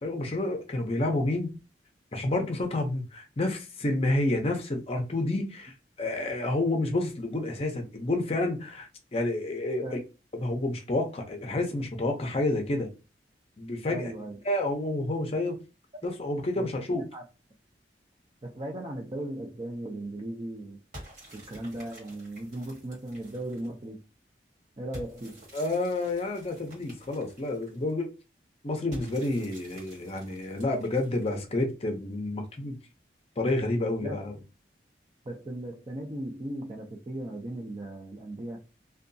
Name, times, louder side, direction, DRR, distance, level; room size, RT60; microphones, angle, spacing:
voice 1, 0.0-1.5 2.1-10.0 10.3-12.9 13.6-14.1 14.5-15.6 16.0-17.0 25.5-28.1 28.6-32.8 33.4-34.4, left 2 dB, 35° left, 0.6 m, -29 dB
voice 2, 13.9-14.4 16.6-17.2 18.4-20.8 21.3-24.0 24.8-25.4 34.0-34.2 35.2-38.6, right 1 dB, 30° right, 0.5 m, -37 dB
sound 1, 20.9-23.8 24.9-27.9 28.9-31.6, equal, 45° right, 1.6 m, -50 dB
2.7 x 2.3 x 2.6 m
head